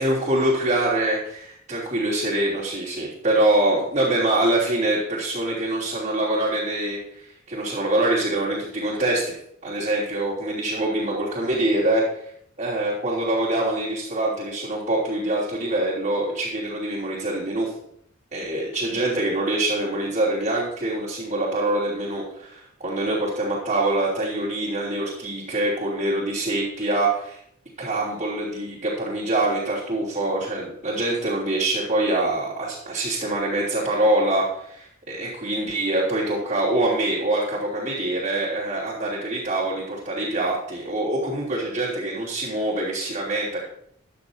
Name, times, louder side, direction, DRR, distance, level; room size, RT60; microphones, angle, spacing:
voice 1, 0.0-9.4 9.6-12.1 12.6-17.7 18.3-27.4 27.8-43.6, right 1 dB, 35° right, -11 dB, 3.5 m, -24 dB
14.0 x 11.0 x 2.8 m, 0.70 s
head